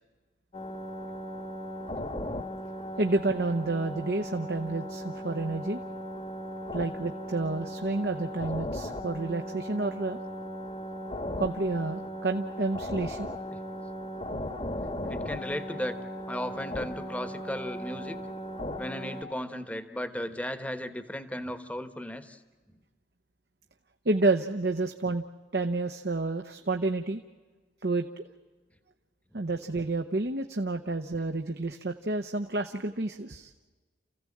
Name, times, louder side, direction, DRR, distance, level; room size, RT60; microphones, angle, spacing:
sound 1, 0.5-19.2, equal, 30° left, 1.3 m, -37 dB
voice 1, 3.0-5.8 6.7-10.2 11.4-13.3 24.0-25.2 25.5-27.2 27.8-28.3 29.3-33.5, right 2 dB, 60° right, 5 dB, 0.9 m, -30 dB
voice 2, 15.1-16.0 16.3-18.2 18.8-22.4 29.3-29.4, equal, 10° left, 10 dB, 1.2 m, -35 dB
29.0 x 15.5 x 8.6 m, 1.3 s
head